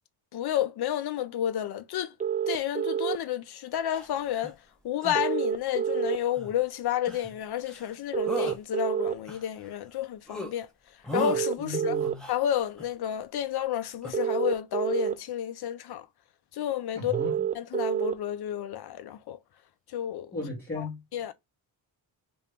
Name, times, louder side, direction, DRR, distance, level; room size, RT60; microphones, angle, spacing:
voice 1, 0.3-2.1 2.5-4.6 4.8-10.7 11.1-12.0 12.3-16.1 16.5-17.1 17.5-19.4 19.9-20.3 20.8-20.9 21.1-21.3, left 11 dB, 55° left, 0.6 m, -31 dB
sound 1, 2.2-3.2 5.1-6.2 8.1-9.1 11.1-12.1 14.1-15.1 17.1-18.1, right 9 dB, 20° right, 0.3 m, -28 dB
sound 2, 3.9-4.6 5.0-5.2 6.3-6.6 7.1-7.4 7.7-8.0 8.3-8.6 9.1-10.0 10.3-10.5 11.0-11.4 12.0-12.9 14.0-14.1, left 1 dB, ahead, 0.8 m, -38 dB
voice 2, 11.6-12.2 16.9-17.5 20.3-21.0, left 2 dB, 20° left, 1.6 m, -35 dB
2.9 x 2.7 x 3.3 m
cardioid pair, 100°, 47 cm